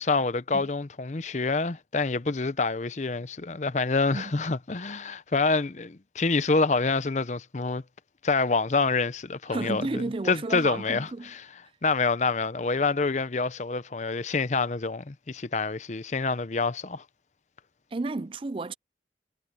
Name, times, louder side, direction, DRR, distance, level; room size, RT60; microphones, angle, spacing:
voice 1, 0.0-7.8 8.2-11.4 11.8-17.0, left 4 dB, 40° left, 0.7 m, -27 dB
voice 2, 9.5-11.3 17.9-18.7, right 3 dB, 30° right, 0.4 m, -32 dB
head